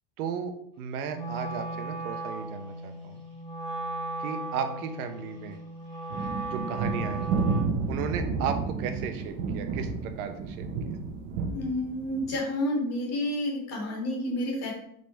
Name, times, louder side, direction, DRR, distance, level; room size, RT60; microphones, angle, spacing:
voice 1, 0.2-3.2 4.2-5.6 6.5-7.3 7.9-10.7, right 7 dB, 85° right, 7 dB, 1.0 m, -35 dB
Wind instrument woodwind instrument, 1.1-7.8, right 2 dB, 10° left, 2.5 m, -36 dB
sound 1, 6.1-12.4, right 4 dB, 65° right, 1.1 m, -31 dB
voice 2, 11.4-14.7, left 1 dB, 35° left, -1 dB, 2.2 m, -30 dB
5.2 x 4.0 x 4.4 m, 0.69 s
supercardioid pair, 145°, 43 cm